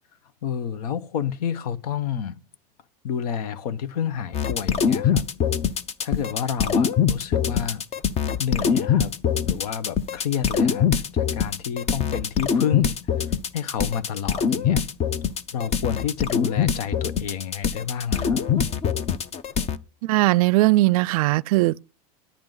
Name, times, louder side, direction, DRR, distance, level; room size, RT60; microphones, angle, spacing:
voice 1, 0.4-2.4 3.0-5.2 6.0-7.8 8.4-9.2 9.4-10.9 11.1-14.8 15.5-18.5, left 8 dB, 80° left, 1.0 m, -30 dB
sound 1, 4.3-19.8, left 7 dB, 35° left, 0.7 m, -23 dB
voice 2, 20.0-21.8, right 19 dB, 75° right, 0.4 m, -19 dB
10.5 x 10.0 x 3.9 m
supercardioid pair, 125°, 19 cm